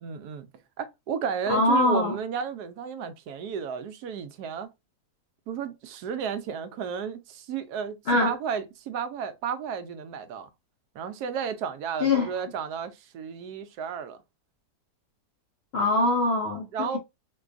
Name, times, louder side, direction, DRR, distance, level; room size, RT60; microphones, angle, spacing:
voice 1, 0.0-0.5 0.8-4.7 5.5-10.5 10.9-14.2 16.7-17.0, right 7 dB, 80° right, 1.1 m, -33 dB
voice 2, 1.5-2.1 8.1-8.3 12.0-12.3 15.7-17.0, left 2 dB, 65° left, 0.6 m, -23 dB
4.6 x 2.3 x 2.4 m
omnidirectional pair, 1.7 m